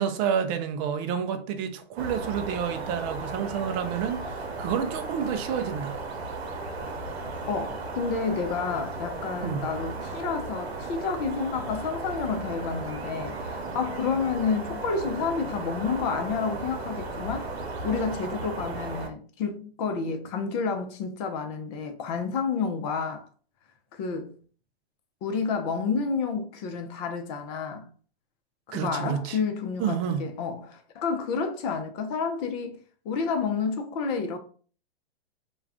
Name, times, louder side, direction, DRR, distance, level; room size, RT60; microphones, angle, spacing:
voice 1, 0.0-4.3 4.6-6.0 9.4-9.6 28.7-29.4 29.8-30.2, right 8 dB, 30° right, 0.4 m, -29 dB
sound 1, 2.0-19.1, right 3 dB, 90° right, 0.8 m, -35 dB
voice 2, 7.5-17.5 17.8-23.3 23.9-24.3 25.2-27.9 28.7-34.4, left 5 dB, 40° left, 0.7 m, -30 dB
2.3 x 2.3 x 3.4 m
hypercardioid pair, 120°, 31 cm